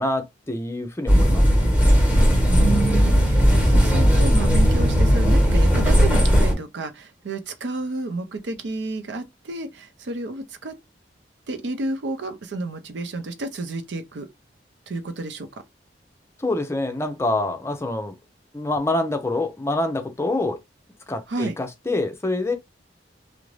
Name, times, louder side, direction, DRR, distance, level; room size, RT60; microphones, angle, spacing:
voice 1, 0.0-1.5 16.4-18.2 18.5-20.6 21.1-22.5, left 2 dB, 15° left, 0.5 m, -26 dB
sound 1, 1.1-6.5, equal, 10° right, 1.2 m, -17 dB
voice 2, 2.5-10.7 11.5-14.3 14.9-15.5 21.3-21.5, right 3 dB, 80° right, 0.5 m, -30 dB
2.5 x 2.0 x 3.1 m
head